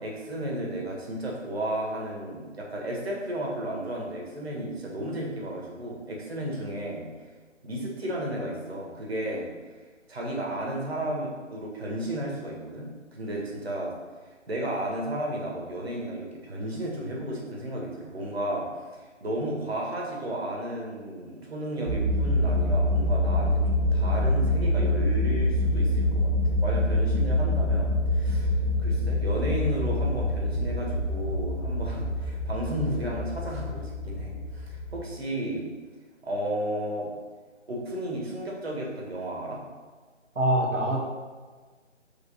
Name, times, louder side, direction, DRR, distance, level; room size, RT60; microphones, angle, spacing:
voice 1, 0.0-7.1 7.6-9.5 10.1-13.9 14.5-18.7 19.2-23.5 23.8-28.5 28.8-35.7 36.2-37.1 37.7-39.6, right 1 dB, 55° right, -2 dB, 1.9 m, -33 dB
sound 1, 21.9-35.0, left 1 dB, 30° right, 0.7 m, -26 dB
voice 2, 40.4-41.0, right 1 dB, 70° right, -3 dB, 1.9 m, -24 dB
5.3 x 3.9 x 5.7 m, 1.4 s
figure-of-eight pair, 160°, 38 cm